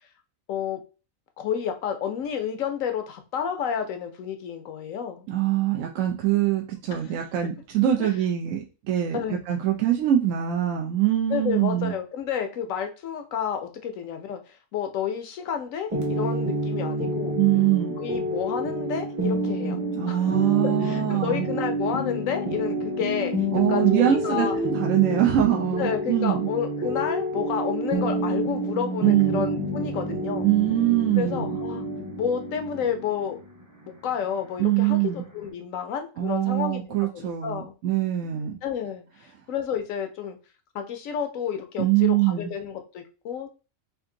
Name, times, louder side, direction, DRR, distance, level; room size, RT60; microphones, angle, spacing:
voice 1, 0.5-0.8 1.4-5.3 6.9-7.2 8.0-8.1 9.1-9.5 11.3-17.4 18.0-19.8 20.1-20.4 20.6-23.3 23.7-24.5 25.8-30.5 31.2-31.8 32.2-33.4 34.0-37.7 38.6-40.4 40.7-43.5, left 8 dB, 75° left, 7 dB, 1.1 m, -30 dB
voice 2, 5.3-11.9 17.4-18.0 20.0-21.5 23.5-26.5 29.0-29.4 30.4-31.6 34.6-35.2 36.2-38.6 41.8-42.5, right 12 dB, 75° right, 1 dB, 1.0 m, -23 dB
sound 1, 15.9-35.5, right 1 dB, 20° right, 0.6 m, -28 dB
3.4 x 2.6 x 3.7 m, 0.32 s
omnidirectional pair, 1.4 m